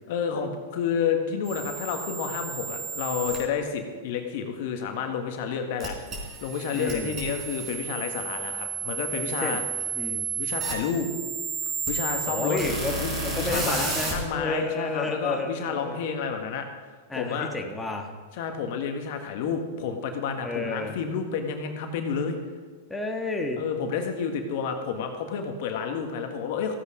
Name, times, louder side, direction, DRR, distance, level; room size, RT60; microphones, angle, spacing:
voice 1, 0.1-9.6 10.4-11.1 11.9-12.6 13.0-16.7 17.1-17.5 18.3-22.4 23.6-26.8, left 6 dB, 60° left, 5 dB, 1.6 m, -30 dB
sound 1, 1.4-3.4 5.8-14.1, right 5 dB, 35° right, 4.6 m, -32 dB
voice 2, 6.7-7.2 9.4-9.6 9.9-10.3 12.2-16.1 17.1-18.1 20.4-21.0 22.9-23.6, left 2 dB, 10° left, 2 dB, 1.6 m, -31 dB
15.0 x 8.3 x 5.1 m, 1.5 s
hypercardioid pair, 105°, 0 cm